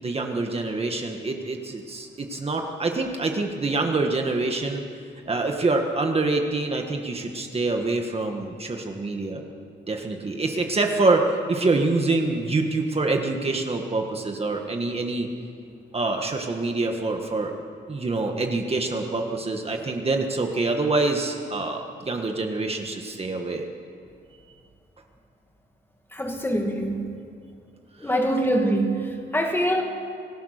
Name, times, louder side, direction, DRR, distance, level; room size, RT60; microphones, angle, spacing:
voice 1, 0.0-4.8 5.3-9.4 9.9-15.3 15.9-17.5 17.9-23.6 28.0-28.1, right 3 dB, 30° right, 3 dB, 1.6 m, -25 dB
voice 2, 26.1-27.2 28.0-29.8, right 1 dB, 10° left, 2 dB, 2.2 m, -24 dB
27.0 x 19.0 x 6.6 m, 2.3 s
wide cardioid pair, 180°, 21 cm